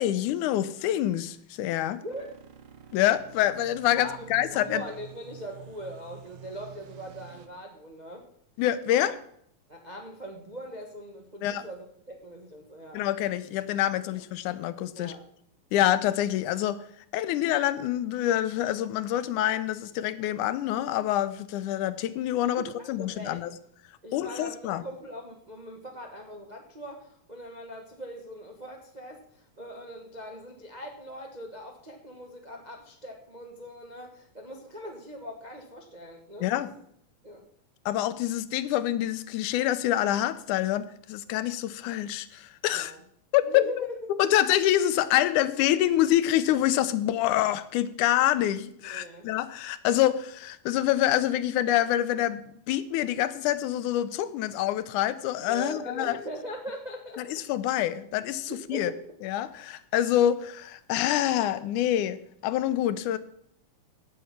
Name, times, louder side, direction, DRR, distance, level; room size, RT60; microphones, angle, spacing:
voice 1, 0.0-2.0 2.9-4.8 8.6-9.2 11.4-11.7 12.9-15.1 15.7-16.8 17.1-23.5 24.1-24.8 36.4-36.7 37.9-42.9 43.3-43.9 44.2-52.4 52.7-56.2 57.2-58.9 59.2-63.2, left 12 dB, 80° left, 14 dB, 2.1 m, -26 dB
voice 2, 1.9-2.3 4.0-8.3 8.9-9.1 9.7-13.0 14.1-14.2 15.0-15.3 20.3-20.4 22.5-23.4 24.0-36.5 37.2-37.5 42.7-43.0 43.4-44.0 48.8-49.3 55.5-57.3 58.5-59.0, equal, 90° right, 2 dB, 0.3 m, -41 dB
sound 1, 2.1-7.5, right 9 dB, 70° right, 2.2 m, -49 dB
16.5 x 7.0 x 5.9 m, 0.68 s
omnidirectional pair, 3.6 m